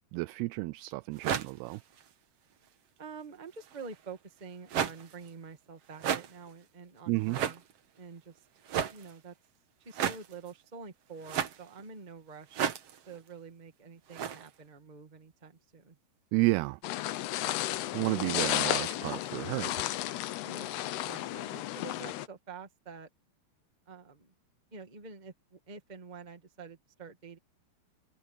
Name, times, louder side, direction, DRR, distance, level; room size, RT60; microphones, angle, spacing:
voice 1, 0.1-1.8 7.1-7.4 16.3-16.8 17.9-19.8, right 22 dB, 85° right, 2.5 m, -31 dB
sound 1, 1.1-2.1 3.6-4.0 4.7-5.3 5.9-6.5 7.2-7.8 8.6-9.1 9.9-10.5 11.2-11.8 12.5-13.3 14.1-14.5, right 8 dB, 65° right, 1.5 m, -34 dB
voice 2, 3.0-7.6 8.0-8.4 8.9-9.3 9.8-16.0 17.4-17.6 20.4-23.1 23.8-24.3 24.7-27.4, right 5 dB, 20° right, 1.1 m, -48 dB
sound 2, 16.8-22.3, left 14 dB, 80° left, 2.9 m, -33 dB
open air
omnidirectional pair, 4.7 m